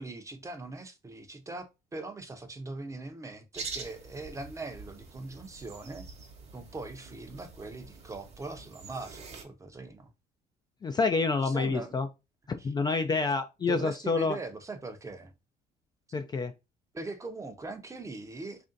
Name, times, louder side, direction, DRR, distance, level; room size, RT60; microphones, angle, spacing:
voice 1, 0.0-6.1 6.5-10.1 11.4-12.0 12.6-12.7 13.6-15.3 16.9-18.7, right 3 dB, 20° right, 0.6 m, -41 dB
sound 1, 3.5-9.4, right 4 dB, 40° right, 1.0 m, -45 dB
voice 2, 10.8-12.1 12.5-14.4 16.1-16.5, left 4 dB, 25° left, 0.3 m, -28 dB
3.3 x 2.6 x 3.8 m
cardioid pair, 110°, 17 cm